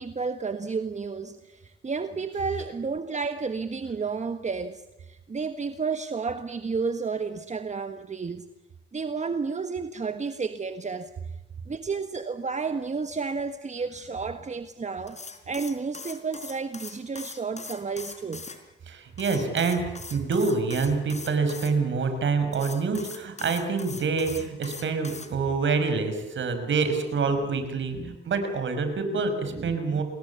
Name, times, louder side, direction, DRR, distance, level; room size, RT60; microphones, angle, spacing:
voice 1, 0.0-8.4 8.9-11.1 11.7-15.2 15.5-18.5 27.9-28.2 29.1-29.2 29.5-30.0, right 4 dB, 35° right, 9 dB, 1.5 m, -31 dB
sound 1, 15.1-18.6 19.2-21.7 22.5-25.3, left 4 dB, 35° left, 4.7 m, -41 dB
voice 2, 18.9-19.8 20.1-30.0, right 4 dB, 75° right, 8 dB, 5.9 m, -26 dB
29.0 x 22.0 x 7.1 m, 0.95 s
cardioid pair, 100°, 20 cm